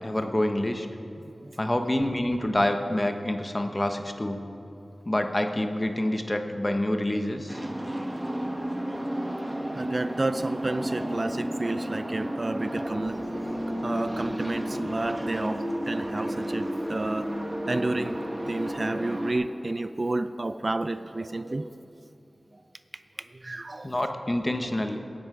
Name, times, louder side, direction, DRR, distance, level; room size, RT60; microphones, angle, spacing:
voice 1, 0.0-0.9 1.6-4.4 5.0-7.6 23.8-25.0, left 1 dB, 25° left, 6 dB, 0.9 m, -27 dB
voice 2, 1.2-1.6 9.6-13.2 13.8-17.3 17.7-18.2 18.5-21.9 22.5-22.6 23.3-24.0, right 2 dB, 40° right, 11 dB, 0.4 m, -31 dB
sound 1, 7.5-19.3, right 1 dB, 20° right, 1.3 m, -32 dB
17.0 x 10.0 x 4.9 m, 2.8 s
wide cardioid pair, 75°, 0 cm